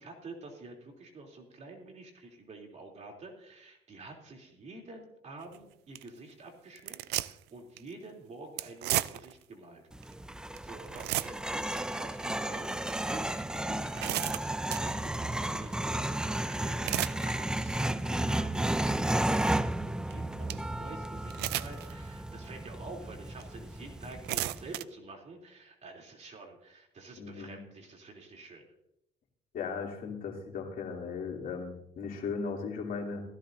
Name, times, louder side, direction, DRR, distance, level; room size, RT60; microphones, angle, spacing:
voice 1, 0.0-9.8 10.2-28.6, right 3 dB, 40° right, 1 dB, 3.1 m, -48 dB
sound 1, 5.4-5.6 6.0-6.1 6.8-7.5 7.8-7.9 8.6-9.4 10.0-10.1 10.6-10.7 10.9-11.6 12.1-12.2 12.9-13.0 13.6-14.9 16.6-17.3 17.7-18.0 18.5-18.6 20.1-20.2 20.5-20.6 21.3-21.9 22.4-22.5 23.4-23.5 24.0-24.8, right 16 dB, 80° right, 0.5 m, -33 dB
sound 2, 9.9-24.8, right 1 dB, 5° right, 0.4 m, -33 dB
voice 2, 27.2-27.6 29.5-33.2, left 5 dB, 60° left, 0 dB, 2.9 m, -37 dB
16.5 x 15.0 x 2.7 m, 0.80 s
cardioid pair, 110°, 17 cm